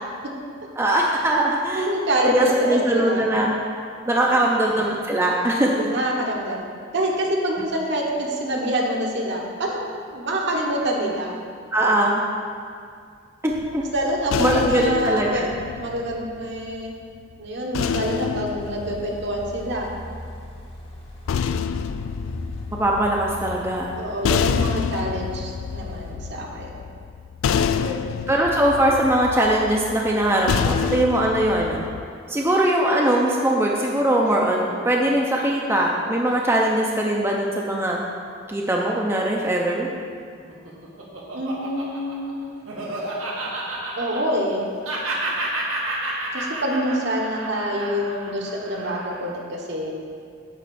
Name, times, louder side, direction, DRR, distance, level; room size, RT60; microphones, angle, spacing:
voice 1, 0.8-1.9 2.2-3.5 4.1-5.9 11.7-12.2 13.4-13.8 14.4-15.5 22.8-23.9 28.3-31.8 32.3-38.0 38.5-39.9, right 1 dB, 15° right, -2 dB, 0.6 m, -21 dB
voice 2, 1.7-3.2 4.3-4.5 5.6-6.6 6.9-11.3 13.9-15.5 15.8-16.9 17.4-19.9 24.0-26.8 27.7-27.9 41.3-42.4 44.0-44.6 46.3-49.9, equal, 60° right, -1 dB, 1.2 m, -26 dB
sound 1, 13.5-16.8 17.7-20.0 21.0-32.0, left 7 dB, 80° left, 0.3 m, -28 dB
sound 2, 18.6-26.1, equal, 30° left, 1.1 m, -40 dB
Laughter, 40.3-44.6 44.8-49.3, right 2 dB, 90° right, 1.5 m, -30 dB
9.2 x 3.7 x 6.9 m, 2.2 s
head